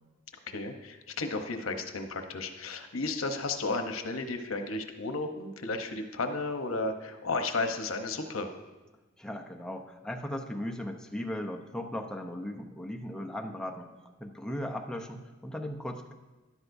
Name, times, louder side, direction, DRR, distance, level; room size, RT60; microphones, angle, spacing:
voice 1, 0.5-8.5, left 3 dB, 85° left, 6 dB, 0.9 m, -33 dB
voice 2, 9.2-13.9 14.2-16.1, left 1 dB, 5° left, 1 dB, 0.7 m, -37 dB
12.5 x 11.0 x 2.7 m, 1.2 s
head